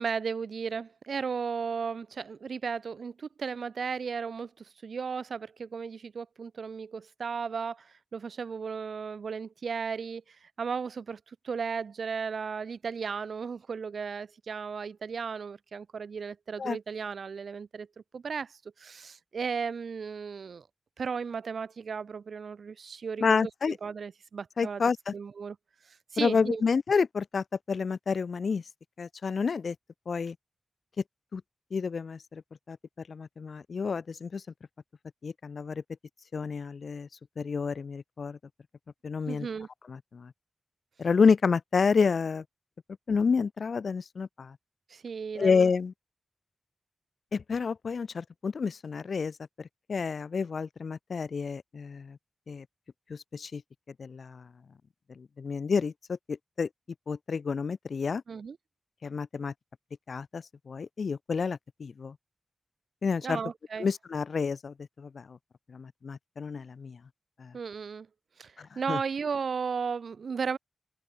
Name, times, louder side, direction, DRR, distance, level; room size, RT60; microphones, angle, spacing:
voice 1, 0.0-17.9 18.1-20.7 21.0-24.8 25.1-25.6 25.8-26.6 39.3-39.7 44.9-45.7 58.3-58.6 63.2-63.9 67.5-68.1 68.4-70.6, right 5 dB, 75° right, 5.0 m, -35 dB
voice 2, 23.2-23.8 24.6-25.1 26.2-28.6 29.0-29.7 30.1-30.3 31.3-31.4 31.7-32.4 32.7-32.8 33.1-34.4 35.2-35.8 36.3-37.1 37.4-38.4 39.0-39.5 39.9-40.3 41.0-42.4 43.1-44.6 45.3-45.9 47.3-52.2 52.5-52.6 53.1-53.6 54.0-54.5 55.2-56.7 57.1-58.2 59.0-59.5 60.1-62.1 63.0-63.4 63.8-65.4 65.7-67.0 67.4-67.5 68.6-69.0, left 5 dB, 65° left, 2.9 m, -29 dB
wide cardioid pair, 140°, 0 cm